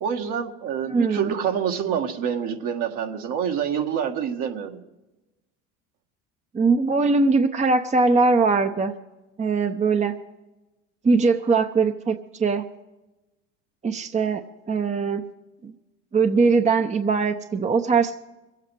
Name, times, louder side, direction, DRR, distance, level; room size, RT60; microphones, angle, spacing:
voice 1, 0.0-4.8, right 8 dB, 60° right, 3 dB, 1.8 m, -27 dB
voice 2, 0.9-1.3 6.5-8.9 9.4-10.2 11.0-12.7 13.8-14.4 14.7-15.2 15.6-15.7 16.1-18.2, right 4 dB, 20° right, 7 dB, 0.8 m, -21 dB
25.0 x 8.5 x 4.7 m, 1.0 s
hypercardioid pair, 75°, 35 cm